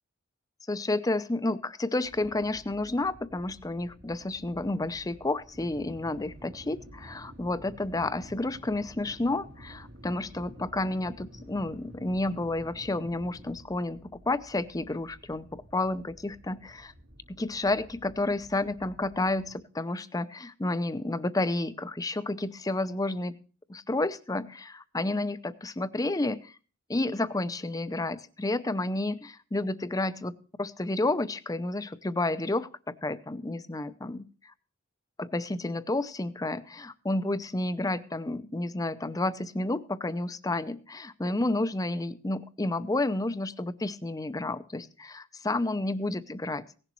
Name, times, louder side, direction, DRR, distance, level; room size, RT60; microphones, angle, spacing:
voice 1, 0.7-16.9 17.3-23.3 23.7-26.5 26.9-30.3 30.6-34.5 35.2-46.6, left 2 dB, 20° left, 14 dB, 0.6 m, -31 dB
sound 1, 2.0-19.6, equal, 90° right, 3.3 m, -51 dB
17.5 x 11.0 x 3.0 m, 0.37 s
head